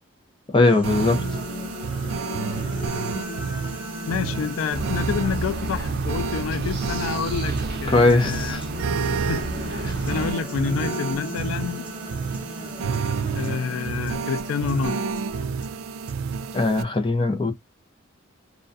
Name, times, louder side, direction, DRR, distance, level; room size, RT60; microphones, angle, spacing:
voice 1, 0.5-1.2 7.9-8.7 16.5-17.5, left 2 dB, 25° left, 0.6 m, -20 dB
sound 1, 0.6-7.7 8.1-16.6, left 2 dB, 5° right, 0.9 m, -38 dB
sound 2, 0.8-16.8, right 5 dB, 85° right, 0.3 m, -30 dB
voice 2, 4.1-8.6 9.3-12.0 13.3-15.1, left 6 dB, 90° left, 0.3 m, -28 dB
sound 3, 4.7-10.3, right 2 dB, 55° right, 0.7 m, -31 dB
2.4 x 2.2 x 2.5 m
head